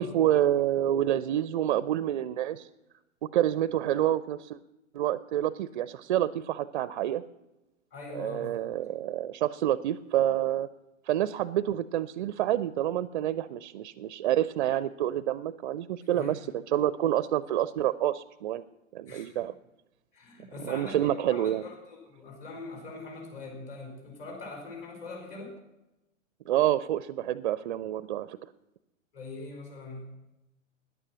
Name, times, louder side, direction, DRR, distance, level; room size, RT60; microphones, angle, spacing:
voice 1, 0.0-2.7 3.3-4.6 4.9-7.2 8.1-10.7 11.1-18.6 18.9-19.5 20.6-21.6 26.5-28.4, right 12 dB, 40° right, 16 dB, 0.4 m, -28 dB
voice 2, 7.9-8.5 16.2-16.3 19.1-19.5 20.1-25.6 29.1-30.1, left 3 dB, 40° left, 0 dB, 4.5 m, -42 dB
13.5 x 10.0 x 7.5 m, 0.98 s
figure-of-eight pair, 115°, 40 cm